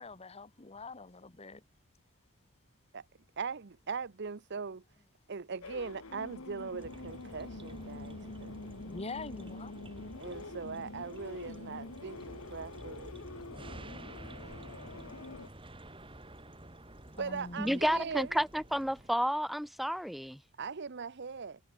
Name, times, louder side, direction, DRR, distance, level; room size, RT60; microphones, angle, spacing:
voice 1, 0.0-1.6 8.8-9.9 17.2-17.8, left 3 dB, 30° left, 1.1 m, -45 dB
voice 2, 3.4-4.8 5.3-8.6 10.2-13.2 17.2-18.4 20.6-21.6, right 5 dB, 55° right, 0.7 m, -40 dB
sound 1, 5.6-15.5, left 3 dB, 80° left, 1.3 m, -46 dB
sound 2, 6.8-19.1, right 1 dB, 25° right, 4.9 m, -50 dB
voice 3, 17.6-20.4, equal, ahead, 1.4 m, -31 dB
head